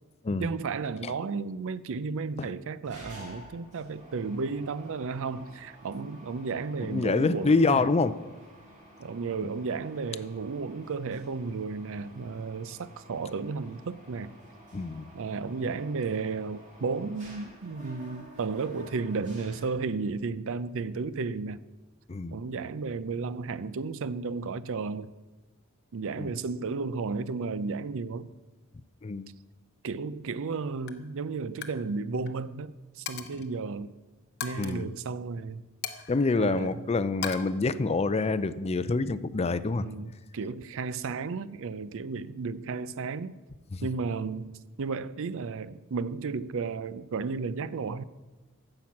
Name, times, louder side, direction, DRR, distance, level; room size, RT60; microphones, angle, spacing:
voice 1, 0.4-7.9 9.0-14.3 15.1-21.6 22.3-25.1 25.9-28.3 29.8-33.9 34.4-35.6 36.4-36.8 39.8-43.4 43.8-48.0, right 4 dB, 65° right, 0.5 m, -33 dB
Mechanisms, 2.8-20.3, right 1 dB, 35° right, 2.9 m, -51 dB
voice 2, 6.8-8.2 14.7-15.1 22.1-22.4 26.2-26.3 29.0-29.3 34.6-34.9 36.1-39.9 43.7-43.9, left 3 dB, 30° left, 0.4 m, -26 dB
Coin (dropping), 30.3-30.6 30.9-31.1 31.4-31.8 32.1-32.3 33.1-33.5 34.4-34.7 35.8-36.7 37.2-37.4, left 7 dB, 50° left, 0.9 m, -38 dB
10.0 x 7.8 x 7.2 m
head